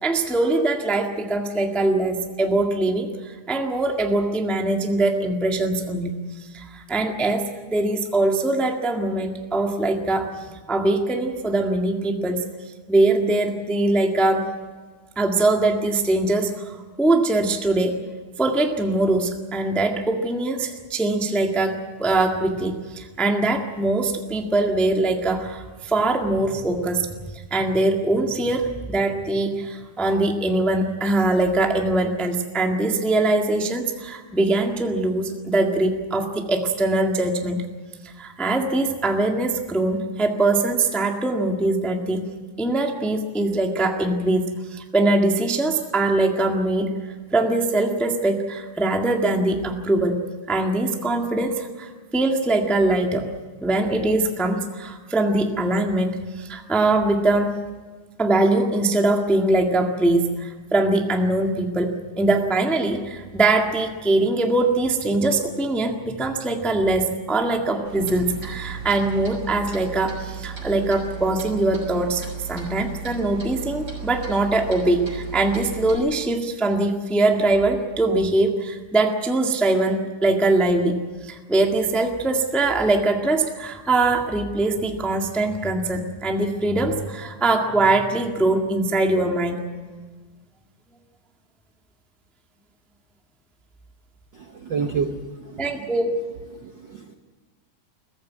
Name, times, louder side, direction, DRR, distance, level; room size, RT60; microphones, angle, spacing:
voice 1, 0.0-6.2 6.5-10.3 10.7-12.4 12.9-14.5 15.1-18.0 18.4-27.1 27.5-37.6 38.2-42.3 42.6-46.9 47.3-50.2 50.5-53.3 53.6-57.6 58.2-89.6 95.6-96.1, right 2 dB, ahead, 2 dB, 0.7 m, -22 dB
Clock, 67.8-76.0, right 7 dB, 25° right, 7.0 m, -35 dB
voice 2, 94.3-95.9 96.5-97.1, right 5 dB, 65° right, 6 dB, 1.1 m, -30 dB
22.5 x 15.5 x 9.4 m, 1.4 s
omnidirectional pair, 3.7 m